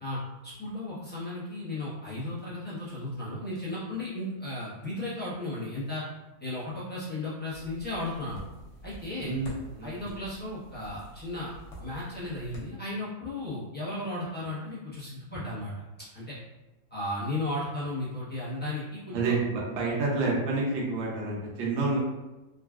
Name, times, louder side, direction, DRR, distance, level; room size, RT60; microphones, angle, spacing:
voice 1, 0.0-6.0 6.4-8.4 8.8-9.3 9.8-11.5 11.8-15.7 16.1-16.3 16.9-19.2, left 1 dB, 10° left, -11 dB, 0.4 m, -35 dB
sound 1, 7.5-12.6, equal, 60° left, 0.9 m, -47 dB
voice 2, 9.2-10.0 19.1-22.0, right 3 dB, 85° right, -3 dB, 1.6 m, -29 dB
3.8 x 2.3 x 2.4 m, 1.1 s
omnidirectional pair, 2.1 m